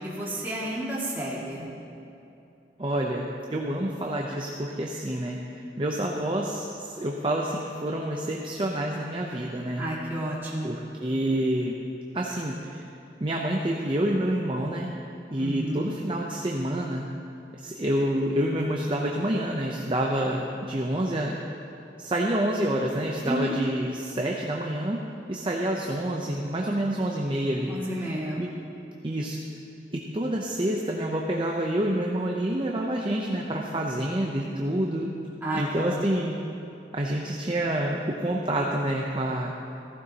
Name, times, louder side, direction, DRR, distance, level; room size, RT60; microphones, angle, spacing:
voice 1, 0.0-1.7 9.8-10.8 15.4-16.0 23.2-23.5 27.7-28.4 35.4-36.3, right 1 dB, 10° right, -7 dB, 2.2 m, -31 dB
voice 2, 2.8-5.4 5.8-9.8 10.6-11.8 12.1-12.8 13.2-14.9 15.3-17.0 17.6-21.4 22.0-25.0 25.3-28.5 29.0-29.4 29.9-35.1 35.5-36.4 36.9-39.5, right 1 dB, 30° right, -1 dB, 0.6 m, -28 dB
15.0 x 15.0 x 2.9 m, 2.8 s
head